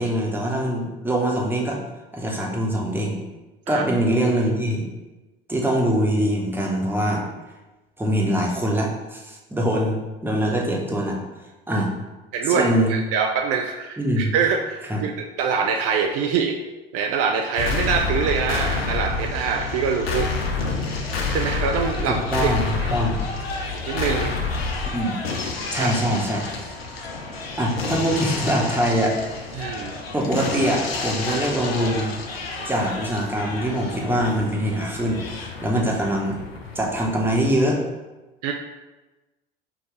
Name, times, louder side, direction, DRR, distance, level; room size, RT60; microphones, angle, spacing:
voice 1, 0.0-1.8 2.1-3.2 3.7-4.9 5.5-7.2 8.0-11.2 11.7-11.9 12.4-12.9 14.0-14.3 14.9-15.0 22.1-23.2 24.9-25.2 25.7-26.5 27.6-29.4 30.1-32.1 32.7-36.4 36.7-37.8, equal, 5° right, -2 dB, 1.0 m, -23 dB
voice 2, 12.3-15.1 15.4-16.6 16.9-20.3 21.3-22.5 22.8-22.9 23.9-24.4 25.8-25.9 29.5-29.9 38.4-38.5, right 6 dB, 55° right, 3 dB, 0.5 m, -24 dB
sound 1, 17.6-37.5, left 4 dB, 90° left, 0.6 m, -29 dB
5.9 x 2.6 x 3.2 m, 1.1 s
hypercardioid pair, 65°, 29 cm